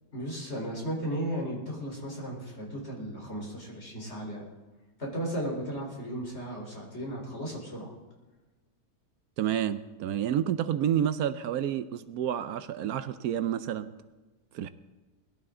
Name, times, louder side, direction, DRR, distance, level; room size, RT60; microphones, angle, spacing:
voice 1, 0.1-4.4 5.0-7.9, right 1 dB, 45° left, -2 dB, 4.3 m, -35 dB
voice 2, 9.4-13.9 14.5-14.7, right 10 dB, 75° right, 13 dB, 1.1 m, -29 dB
21.0 x 12.0 x 3.8 m, 1.2 s
omnidirectional pair, 1.6 m